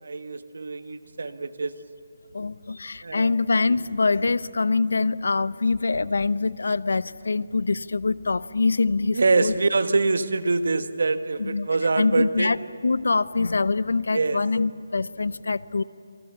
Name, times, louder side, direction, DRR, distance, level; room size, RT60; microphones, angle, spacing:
voice 1, 0.0-1.7 3.0-3.3 9.1-12.5 14.1-14.4, right 3 dB, 70° right, 10 dB, 1.4 m, -24 dB
voice 2, 2.3-9.5 11.4-11.7 12.0-12.6 12.8-15.8, left 3 dB, 80° left, 18 dB, 0.7 m, -24 dB
27.5 x 26.5 x 7.0 m, 2.4 s
hypercardioid pair, 175°, 0 cm